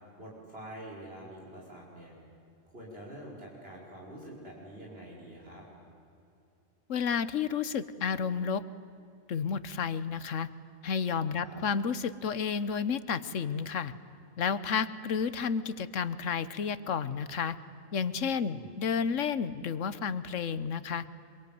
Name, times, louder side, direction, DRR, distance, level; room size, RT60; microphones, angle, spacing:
voice 1, 0.2-2.1 2.7-5.6 11.4-11.6 18.5-18.7, right 1 dB, 55° right, -3 dB, 5.9 m, -46 dB
voice 2, 6.9-8.6 9.3-10.5 10.8-13.9 14.4-17.6 17.9-21.0, left 6 dB, 85° left, 15 dB, 1.4 m, -31 dB
25.5 x 23.5 x 9.5 m, 2.6 s
omnidirectional pair, 1.3 m